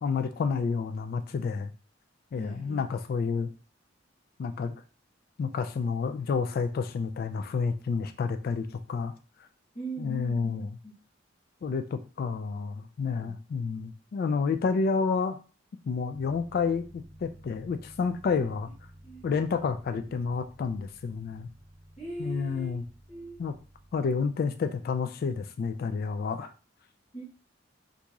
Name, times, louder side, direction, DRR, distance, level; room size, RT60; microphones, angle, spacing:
voice 1, 0.0-1.7 2.3-3.5 4.4-4.7 5.4-9.1 10.0-10.7 11.6-15.4 15.9-18.7 19.2-21.5 22.2-22.8 23.4-23.5 23.9-26.5, left 5 dB, 50° left, 9 dB, 0.3 m, -30 dB
voice 2, 2.3-2.8 9.7-10.9 13.2-13.3 19.0-19.2 22.0-22.8 23.1-23.4 27.1-27.2, right 1 dB, 30° left, -9 dB, 1.2 m, -40 dB
sound 1, 16.1-24.0, right 1 dB, 80° left, 0.8 m, -53 dB
3.0 x 2.6 x 3.4 m, 0.36 s
head